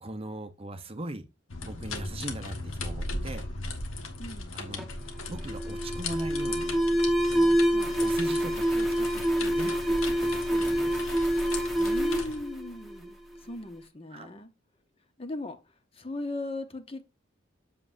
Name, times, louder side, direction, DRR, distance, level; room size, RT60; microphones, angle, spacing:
voice 1, 0.0-1.3 1.6-3.5 4.5-4.8 5.3-6.8 7.2-7.6 8.0-11.0 14.1-14.3, right 1 dB, 30° right, 0.7 m, -40 dB
sound 1, 1.5-12.4, left 3 dB, 85° left, 1.5 m, -38 dB
voice 2, 4.2-4.6 7.7-8.0 11.8-14.5 15.2-15.6 15.9-17.1, left 2 dB, 30° left, 0.9 m, -38 dB
Alarm, 4.8-13.4, equal, ahead, 1.2 m, -27 dB
7.5 x 7.3 x 2.6 m
head